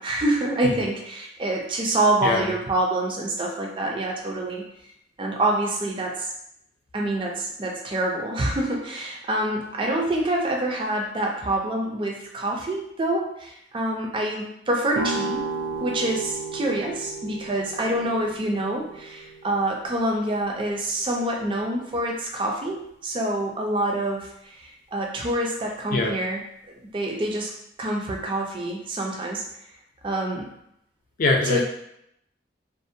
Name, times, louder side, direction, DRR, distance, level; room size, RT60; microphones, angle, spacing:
voice 1, 0.0-4.6 5.2-6.3 6.9-15.4 15.8-26.4 26.7-27.5 27.8-29.4 30.0-30.5 31.5-31.6, right 1 dB, 30° right, 0 dB, 0.4 m, -26 dB
voice 2, 2.2-2.5 25.9-26.2 31.2-31.6, left 2 dB, 50° left, 1 dB, 0.4 m, -23 dB
sound 1, 14.9-20.7, right 3 dB, 85° right, 0.5 m, -34 dB
2.5 x 2.1 x 2.6 m, 0.77 s
head